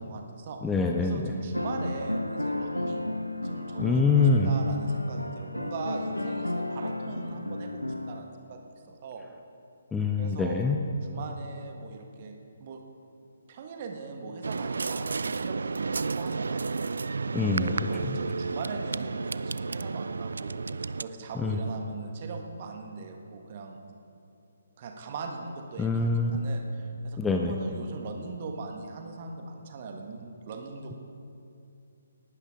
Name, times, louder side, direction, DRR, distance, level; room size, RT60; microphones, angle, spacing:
voice 1, 0.0-0.6 0.9-3.0 3.4-8.6 8.9-9.2 10.2-10.7 11.0-12.3 12.6-12.8 13.5-16.9 17.4-23.8 24.8-31.0, right 4 dB, 35° right, 3 dB, 1.5 m, -40 dB
voice 2, 0.6-1.3 3.8-4.5 9.9-10.8 17.3-17.7 18.0-18.2 21.4-21.6 25.8-26.4 27.2-27.5, left 4 dB, 10° left, 2 dB, 0.6 m, -25 dB
sound 1, 1.5-8.2, left 1 dB, 90° left, 0.7 m, -33 dB
sound 2, 14.4-21.0, right 4 dB, 60° right, 0.3 m, -32 dB
19.0 x 12.0 x 3.7 m, 2.6 s
figure-of-eight pair, 140°, 0 cm